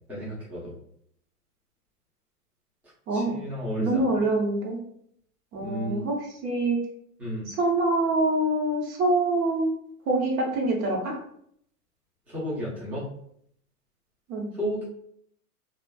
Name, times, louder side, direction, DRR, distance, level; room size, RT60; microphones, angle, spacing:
voice 1, 0.1-0.7 3.1-4.1 5.6-6.0 7.2-7.5 12.3-13.1 14.5-14.8, equal, 5° right, -7 dB, 0.5 m, -32 dB
voice 2, 3.1-3.4 3.8-4.8 5.5-6.8 7.5-9.7 10.1-11.2 14.3-14.5, right 2 dB, 65° right, -1 dB, 1.0 m, -25 dB
2.5 x 2.3 x 2.2 m, 0.68 s
hypercardioid pair, 115°, 46 cm